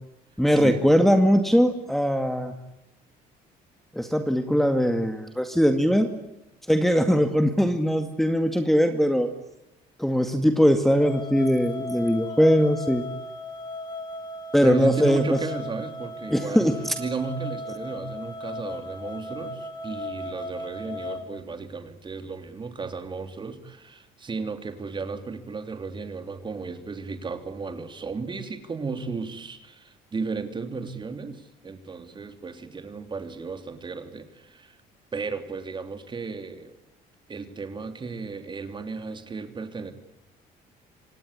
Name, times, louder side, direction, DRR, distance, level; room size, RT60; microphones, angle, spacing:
voice 1, 0.4-2.5 3.9-6.1 6.7-9.3 10.0-13.0 14.5-15.4 16.3-16.9, equal, ahead, 6 dB, 2.1 m, -21 dB
sound 1, 11.0-21.2, left 2 dB, 25° left, 2.6 m, -36 dB
voice 2, 14.6-34.8 35.1-36.7 37.3-39.9, right 4 dB, 30° right, 8 dB, 3.2 m, -34 dB
26.5 x 18.5 x 9.9 m, 0.89 s
cardioid pair, 110°, 17 cm